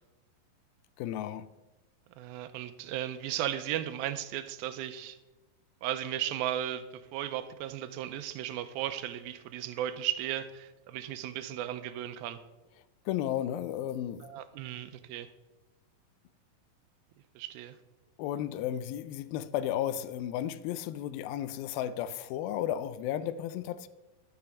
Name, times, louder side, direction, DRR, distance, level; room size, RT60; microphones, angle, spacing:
voice 1, 1.0-1.5 13.1-14.2 18.2-23.9, left 11 dB, 85° left, 2.4 m, -33 dB
voice 2, 2.2-5.2 5.8-12.4 14.2-15.3 17.4-17.8, right 12 dB, 90° right, 2.5 m, -35 dB
12.0 x 6.8 x 6.2 m
omnidirectional pair, 4.1 m